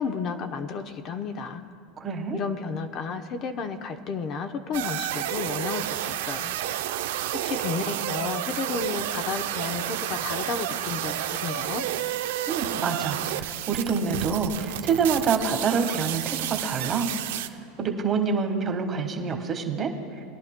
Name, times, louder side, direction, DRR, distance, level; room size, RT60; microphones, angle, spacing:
voice 1, 0.0-1.6 2.3-6.6 7.3-11.8, left 5 dB, 40° left, 7 dB, 0.7 m, -32 dB
voice 2, 2.0-2.4 12.5-17.1 17.8-19.9, right 5 dB, 30° right, 4 dB, 1.3 m, -26 dB
sound 1, 4.7-17.5, right 12 dB, 80° right, 0.5 m, -31 dB
22.0 x 10.5 x 2.2 m, 2.3 s
supercardioid pair, 130°, 0 cm